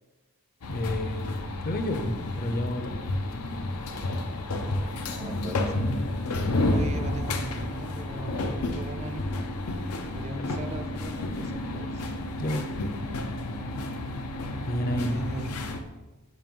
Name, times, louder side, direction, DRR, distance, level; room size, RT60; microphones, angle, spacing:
sound 1, 0.6-15.8, left 2 dB, 90° left, 0.6 m, -31 dB
voice 1, 0.7-3.1 12.4-12.7 14.6-15.3, left 1 dB, 40° left, 5 dB, 0.6 m, -30 dB
voice 2, 5.0-6.0 6.7-9.5 10.1-12.1 15.1-15.6, right 2 dB, 30° right, 7 dB, 0.3 m, -40 dB
7.4 x 2.6 x 5.3 m, 1.1 s
head